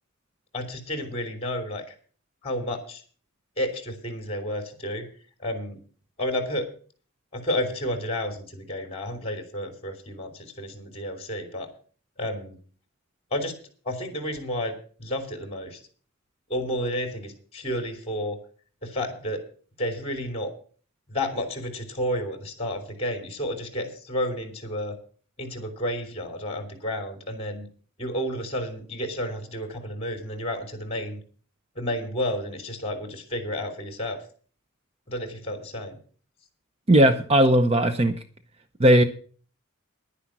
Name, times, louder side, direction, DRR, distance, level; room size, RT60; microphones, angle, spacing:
voice 1, 0.5-1.9 2.4-3.0 3.6-5.1 5.4-5.8 6.2-6.7 7.3-11.7 12.2-12.6 13.3-13.5 13.8-15.8 16.5-18.4 18.8-19.4 19.8-20.5 21.1-24.9 25.4-27.7 28.0-31.2 31.7-34.2 35.1-36.0, left 1 dB, 30° left, 5 dB, 3.0 m, -31 dB
voice 2, 36.9-38.2 38.8-39.0, right 1 dB, 30° right, 9 dB, 0.7 m, -17 dB
10.5 x 10.0 x 6.0 m, 0.42 s
head